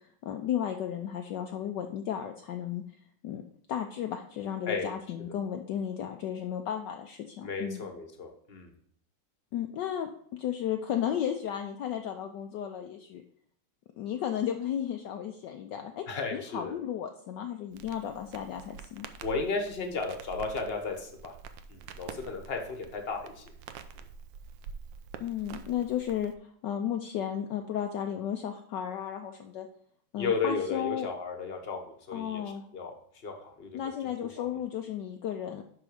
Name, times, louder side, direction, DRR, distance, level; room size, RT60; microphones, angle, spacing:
voice 1, 0.2-2.8 3.2-3.4 3.7-7.8 9.5-10.1 10.4-13.2 14.0-16.0 16.3-19.1 25.2-26.3 26.6-29.7 30.1-31.1 32.1-32.6 33.7-35.6, left 9 dB, 70° left, 4 dB, 1.1 m, -34 dB
voice 2, 7.4-8.7 16.1-16.7 19.2-21.3 21.7-23.4 30.2-32.4 32.7-32.9 33.2-34.1 34.4-34.5, left 4 dB, 35° left, 4 dB, 1.1 m, -34 dB
Crackle, 17.7-26.3, right 7 dB, 75° right, 1.3 m, -47 dB
11.0 x 3.9 x 4.9 m, 0.63 s
omnidirectional pair, 2.2 m